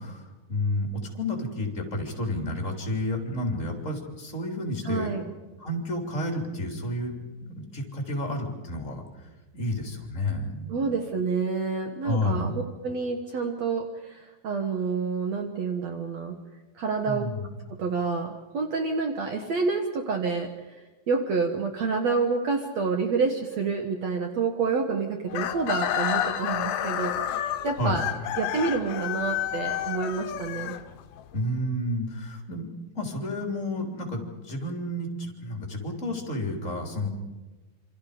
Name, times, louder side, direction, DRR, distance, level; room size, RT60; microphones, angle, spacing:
voice 1, 0.0-5.1 5.6-7.1 7.4-10.9 12.0-12.5 17.0-17.5 27.8-28.0 31.3-32.7 32.9-37.1, left 1 dB, 20° left, 3 dB, 3.0 m, -31 dB
voice 2, 4.8-5.2 10.7-16.3 16.7-17.2 17.7-20.5 21.1-28.1 28.4-30.7, right 4 dB, 90° right, 5 dB, 1.5 m, -28 dB
Chicken rooster, 25.3-31.3, left 11 dB, 75° left, 2.4 m, -30 dB
27.5 x 26.5 x 5.1 m, 1.1 s
omnidirectional pair, 5.4 m